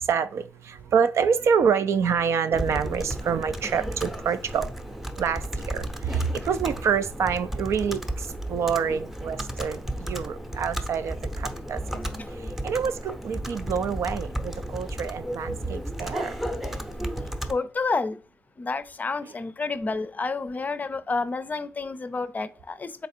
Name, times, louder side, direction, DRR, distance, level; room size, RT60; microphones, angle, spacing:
voice 1, 0.0-4.7 5.2-11.8 12.6-16.3, right 6 dB, 65° right, 0.4 m, -27 dB
Computer keyboard, 2.5-17.5, right 1 dB, 5° right, 0.7 m, -33 dB
voice 2, 17.5-18.2 18.6-23.1, left 3 dB, 35° left, 0.5 m, -29 dB
3.9 x 2.4 x 4.3 m
supercardioid pair, 55°, 5 cm